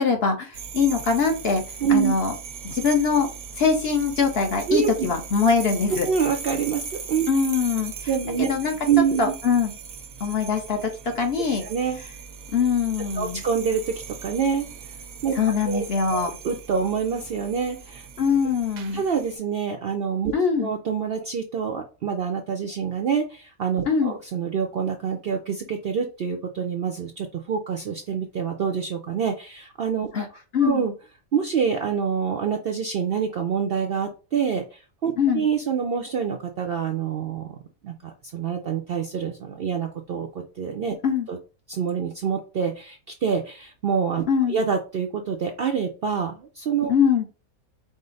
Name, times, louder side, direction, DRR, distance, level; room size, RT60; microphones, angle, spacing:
voice 1, 0.0-1.6 1.9-2.3 2.6-3.3 3.6-6.1 7.3-7.9 8.4-8.8 9.2-9.7 10.2-11.6 12.5-13.4 15.3-16.3 18.2-19.0 20.3-20.7 23.8-24.2 30.1-30.2 30.5-30.8 35.2-35.4 41.0-41.3 44.3-44.6 46.9-47.2, left 5 dB, 50° left, 3 dB, 1.0 m, -22 dB
sound 1, 0.5-19.4, right 6 dB, 85° right, 1.1 m, -39 dB
voice 2, 1.8-2.1 4.7-5.1 5.9-6.8 7.1-7.3 8.1-8.5 8.9-9.3 11.6-12.0 13.2-14.7 15.2-15.3 15.7-15.8 16.1-18.1 18.9-20.3 20.6-30.2 30.6-30.9 31.3-37.5 37.8-37.9 38.3-40.3 40.6-40.9 41.3-41.4 41.7-46.9, right 7 dB, 60° right, 4 dB, 0.6 m, -26 dB
5.1 x 2.0 x 3.8 m, 0.34 s
omnidirectional pair, 1.5 m